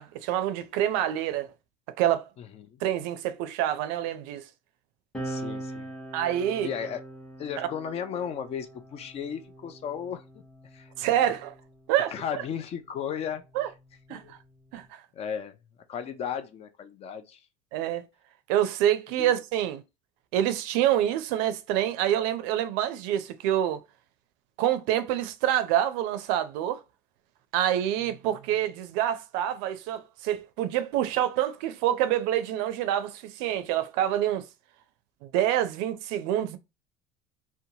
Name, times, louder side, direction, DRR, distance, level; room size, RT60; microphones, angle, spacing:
voice 1, 0.0-1.5 2.0-2.2 2.8-4.5 6.1-6.7 7.6-7.7 11.0-11.5 11.9-12.4 13.5-13.7 14.1-14.4 14.7-15.0 17.7-18.1 18.5-19.8 20.3-23.8 24.6-26.8 27.5-34.4 35.2-36.6, right 11 dB, 75° right, 0.5 m, -27 dB
voice 2, 2.4-2.8 5.2-5.9 6.6-7.0 7.4-10.4 10.7-11.3 12.1-13.4 14.1-14.3 15.1-15.6 15.9-17.5 19.2-19.3, left 8 dB, 35° left, 0.4 m, -35 dB
sound 1, 5.1-12.1 13.0-14.9, right 1 dB, 5° left, 0.7 m, -42 dB
2.7 x 2.2 x 2.7 m
supercardioid pair, 125°, 18 cm